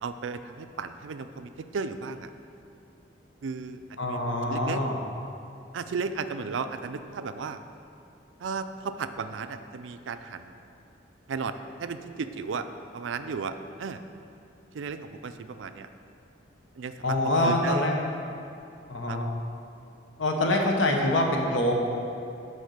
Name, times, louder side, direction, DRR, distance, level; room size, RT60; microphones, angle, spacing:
voice 1, 0.0-2.3 3.4-4.8 5.7-7.6 8.4-10.6 11.3-12.7 12.9-14.0 14.7-15.9 16.8-17.8 19.1-19.2, right 5 dB, 90° right, 10 dB, 0.4 m, -35 dB
voice 2, 4.0-5.0 17.0-18.0 18.9-19.3 20.2-21.7, left 1 dB, 90° left, 1 dB, 1.0 m, -25 dB
6.4 x 5.3 x 6.6 m, 2.6 s
head